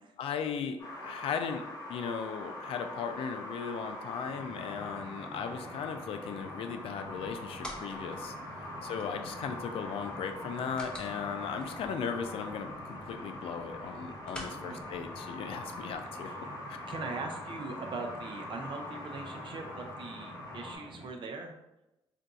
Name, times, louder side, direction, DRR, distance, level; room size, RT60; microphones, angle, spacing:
voice 1, 0.2-0.8 1.0-1.6 1.9-8.3 8.8-16.3, left 6 dB, 75° left, 7 dB, 0.4 m, -37 dB
sound 1, 0.8-20.8, left 1 dB, 40° left, 1.3 m, -43 dB
Mechanisms, 4.2-21.1, right 1 dB, 40° right, 1.3 m, -49 dB
sound 2, 7.0-15.9, left 1 dB, 10° left, 0.7 m, -50 dB
voice 2, 8.5-8.9 14.6-15.0 16.2-16.5 16.9-21.5, right 3 dB, 55° right, 4 dB, 0.5 m, -41 dB
2.5 x 2.3 x 3.9 m, 0.93 s
cardioid pair, 100°, 10 cm